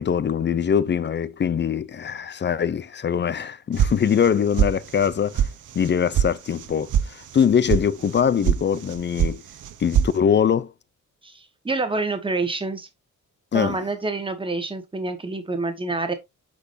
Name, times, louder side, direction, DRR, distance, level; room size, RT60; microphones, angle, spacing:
voice 1, 0.0-5.5 5.7-9.4 9.8-10.7 13.5-13.8, left 7 dB, 35° left, 0.4 m, -22 dB
sound 1, 3.8-4.3 4.6-5.1 5.3-5.5 5.8-6.3 6.6-7.0 7.3-7.8 8.1-8.6 8.9-9.4 9.6-10.1, right 9 dB, 70° right, 0.9 m, -21 dB
voice 2, 11.2-12.9 13.5-16.1, right 3 dB, 15° right, 1.3 m, -27 dB
8.6 x 6.0 x 2.6 m
wide cardioid pair, 175°, 32 cm